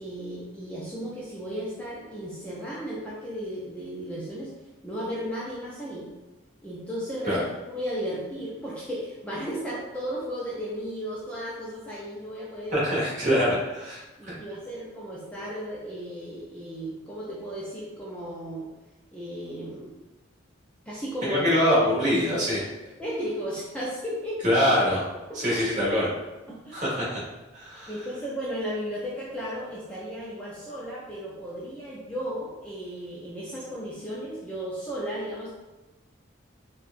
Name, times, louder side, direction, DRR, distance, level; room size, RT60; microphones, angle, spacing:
voice 1, 0.0-4.5 4.8-6.1 6.6-7.5 7.7-12.9 13.3-13.5 14.2-18.7 19.1-20.0 20.9-21.5 23.0-24.4 25.5-25.6 26.5-26.8 27.9-35.5, equal, 5° left, -7 dB, 0.4 m, -35 dB
voice 2, 12.7-14.4 21.2-22.6 24.4-25.0 25.3-26.1 26.7-27.2 27.5-27.9, equal, 35° right, -6 dB, 1.1 m, -24 dB
4.3 x 2.3 x 2.5 m, 1.1 s
head